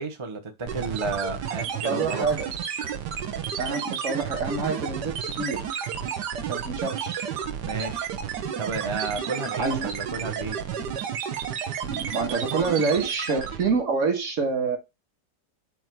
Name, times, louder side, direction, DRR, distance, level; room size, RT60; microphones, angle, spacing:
voice 1, 0.0-2.3 7.6-8.1 8.6-10.6, right 3 dB, 30° right, 4 dB, 0.5 m, -32 dB
sound 1, 0.7-13.8, right 8 dB, 75° right, 1.4 m, -31 dB
voice 2, 1.8-2.5 3.6-5.7 6.5-7.2 9.6-9.9 11.8-14.8, right 4 dB, 50° right, 3 dB, 1.6 m, -27 dB
8.0 x 2.7 x 4.5 m, 0.23 s
omnidirectional pair, 1.8 m